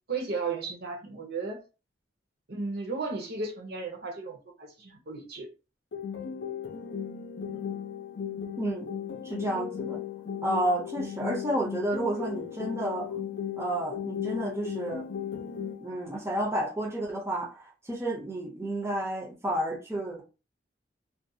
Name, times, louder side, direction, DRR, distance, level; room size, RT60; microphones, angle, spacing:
voice 1, 0.1-1.6 2.5-5.5 7.5-7.6, right 4 dB, 60° right, 0.7 m, -35 dB
sound 1, 5.9-15.9, left 8 dB, 80° left, 0.5 m, -36 dB
voice 2, 8.6-8.9 9.2-10.0 10.4-13.1 13.6-15.0 15.8-20.2, right 1 dB, 15° right, 0.5 m, -31 dB
2.4 x 2.2 x 2.6 m
head